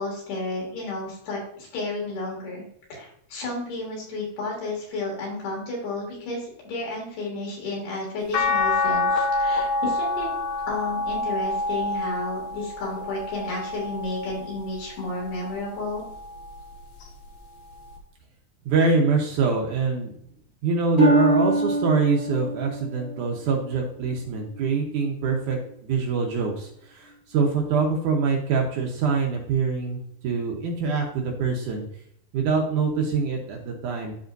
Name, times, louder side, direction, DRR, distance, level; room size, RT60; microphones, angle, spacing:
voice 1, 0.0-2.6 2.9-10.3 10.7-16.1, left 2 dB, 85° left, -2 dB, 4.5 m, -32 dB
sound 1, 8.3-14.6 15.2-16.6 18.0-18.1, left 3 dB, 65° left, 2.5 m, -27 dB
voice 2, 18.7-20.1 20.6-31.8 32.3-34.1, right 4 dB, 70° right, 1 dB, 2.2 m, -24 dB
Harp, 21.0-24.7 25.3-25.7 26.3-26.4, right 1 dB, 20° right, 2.9 m, -25 dB
12.5 x 4.3 x 2.6 m, 0.67 s
omnidirectional pair, 4.3 m